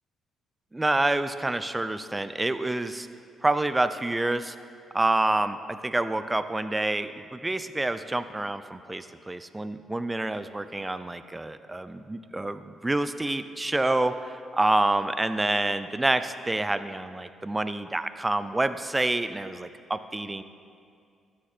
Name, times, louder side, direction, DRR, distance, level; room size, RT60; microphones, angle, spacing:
voice 1, 0.7-3.1 3.4-4.6 4.9-20.4, right 2 dB, 15° right, 11 dB, 0.5 m, -27 dB
12.5 x 7.5 x 4.4 m, 2.3 s
cardioid pair, 90°, 0 cm